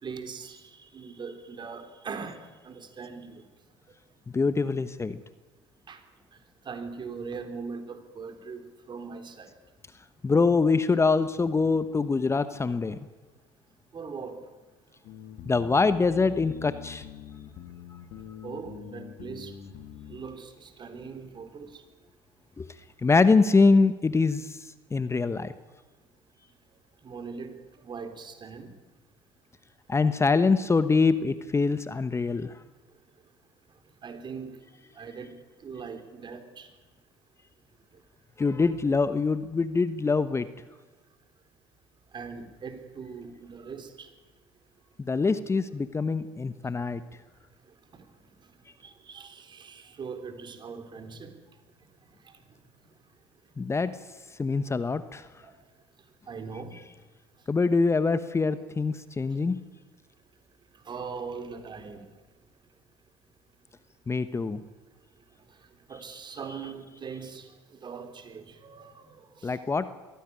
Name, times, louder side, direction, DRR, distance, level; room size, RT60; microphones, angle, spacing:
voice 1, 0.0-3.4 5.9-6.0 6.7-9.5 13.9-14.4 18.4-19.5 20.1-21.8 27.0-27.6 27.8-28.7 34.0-34.6 35.0-35.4 35.6-36.7 42.1-44.1 48.8-51.3 52.2-52.3 55.4-55.5 56.3-56.8 60.9-62.1 65.9-69.6, right 5 dB, 40° right, 3.7 m, -40 dB
voice 2, 4.3-5.2 10.2-13.0 15.4-17.1 22.6-22.7 23.0-24.6 24.9-25.5 29.9-32.5 38.4-40.5 45.0-47.0 53.6-53.9 54.4-55.3 57.5-59.6 64.1-64.6 69.4-70.0, left 4 dB, 20° left, 1.1 m, -24 dB
sound 1, 15.0-20.3, left 9 dB, 65° left, 2.2 m, -44 dB
22.5 x 16.0 x 9.9 m
hypercardioid pair, 70°, 12 cm